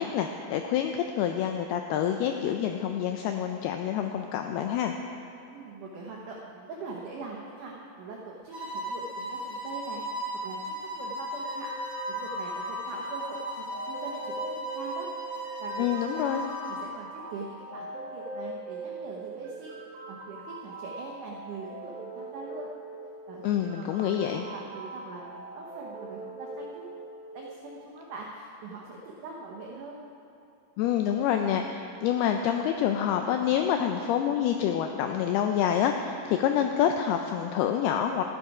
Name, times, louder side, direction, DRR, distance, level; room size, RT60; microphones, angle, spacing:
voice 1, 0.0-4.9 15.8-16.4 23.4-24.4 30.8-38.2, left 9 dB, 85° left, 5 dB, 2.2 m, -27 dB
voice 2, 5.5-11.7 12.1-15.1 15.6-16.4 16.7-19.8 20.1-22.7 23.3-27.0 27.3-30.0, right 3 dB, 90° right, -2 dB, 1.7 m, -42 dB
sound 1, 8.5-16.9, right 1 dB, 25° right, 0.4 m, -36 dB
sound 2, 11.4-27.4, right 2 dB, 60° right, 4.2 m, -41 dB
13.5 x 10.5 x 4.8 m, 2.7 s
omnidirectional pair, 5.1 m